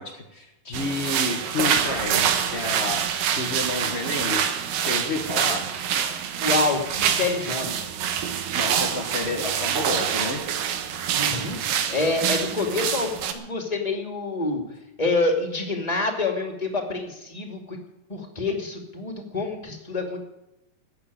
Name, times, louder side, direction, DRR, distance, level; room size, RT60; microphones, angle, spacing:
voice 1, 0.0-3.1 3.4-5.7 8.5-10.5, left 2 dB, 40° left, 0 dB, 0.9 m, -30 dB
sound 1, 0.7-13.3, right 8 dB, 90° right, 2.9 m, -26 dB
voice 2, 6.4-7.8 11.1-11.6 11.9-14.6 15.0-17.8 18.1-20.2, left 3 dB, 15° left, 2 dB, 2.1 m, -27 dB
14.5 x 8.8 x 9.8 m, 0.93 s
omnidirectional pair, 3.7 m